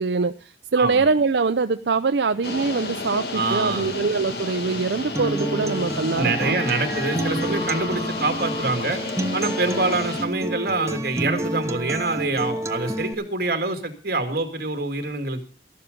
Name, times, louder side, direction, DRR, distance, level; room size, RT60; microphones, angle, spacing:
voice 1, 0.0-6.6, right 4 dB, 75° right, 8 dB, 0.6 m, -23 dB
sound 1, 2.4-10.3, left 2 dB, 60° left, 2.0 m, -32 dB
voice 2, 3.3-4.0 6.2-9.0 9.3-15.4, right 3 dB, 55° right, 7 dB, 2.2 m, -25 dB
Acoustic guitar, 5.1-13.1, right 1 dB, 15° right, 0.8 m, -29 dB
sound 2, 6.2-10.1, left 1 dB, 30° left, 0.9 m, -36 dB
13.5 x 11.5 x 5.1 m, 0.39 s
head